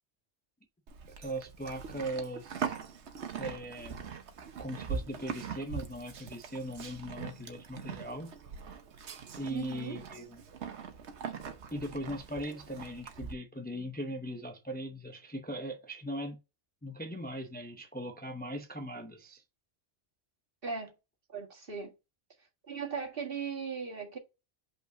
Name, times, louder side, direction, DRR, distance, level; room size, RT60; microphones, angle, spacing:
Livestock farm animals working animals, 0.9-13.3, right 6 dB, 90° right, 1.2 m, -42 dB
voice 1, 1.2-2.7 3.4-4.0 4.6-8.3 9.4-10.4 11.7-16.4 16.8-19.4, equal, 10° left, 0.6 m, -39 dB
voice 2, 9.5-10.0 20.6-20.9 21.3-21.9 22.7-24.2, right 5 dB, 55° right, 2.0 m, -38 dB
5.5 x 4.5 x 5.7 m
omnidirectional pair, 1.1 m